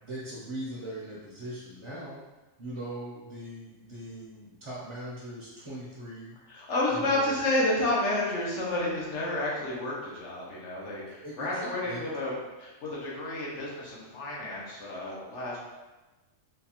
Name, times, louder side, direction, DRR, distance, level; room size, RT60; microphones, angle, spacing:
voice 1, 0.0-2.2 2.6-6.4 6.9-7.5 11.2-12.0, right 1 dB, 35° right, -7 dB, 0.5 m, -40 dB
voice 2, 6.5-12.3 12.6-15.6, left 1 dB, 70° left, -5 dB, 1.2 m, -30 dB
3.8 x 2.4 x 2.8 m, 1.1 s
omnidirectional pair, 1.3 m